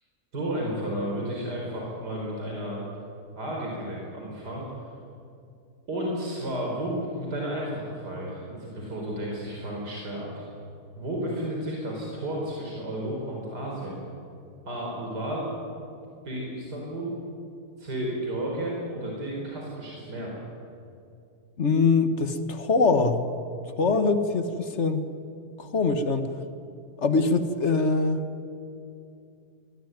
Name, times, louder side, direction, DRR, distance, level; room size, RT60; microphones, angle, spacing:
voice 1, 0.3-2.8 3.3-4.6 5.9-10.5 11.0-14.0 14.6-15.5 16.2-17.1 17.8-20.3, right 1 dB, 90° right, -2 dB, 4.9 m, -32 dB
voice 2, 21.6-23.2 23.8-25.0 25.6-26.3 27.0-28.2, left 4 dB, 45° left, 9 dB, 1.7 m, -23 dB
24.0 x 20.5 x 9.4 m, 2.6 s
omnidirectional pair, 1.7 m